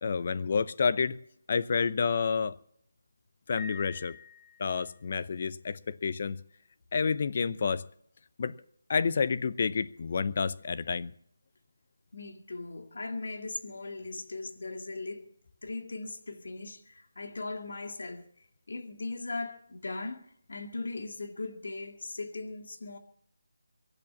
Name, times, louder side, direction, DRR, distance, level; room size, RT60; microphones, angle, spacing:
voice 1, 0.0-1.2 1.5-2.6 3.5-4.2 4.6-6.4 6.9-7.8 8.4-8.6 8.9-11.1, left 5 dB, 45° left, 0.8 m, -29 dB
Piano, 3.6-5.0, left 4 dB, 5° left, 1.4 m, -47 dB
voice 2, 12.1-15.3 15.6-23.0, left 3 dB, 65° left, 2.1 m, -39 dB
23.0 x 8.2 x 7.2 m
figure-of-eight pair, 160°, 0 cm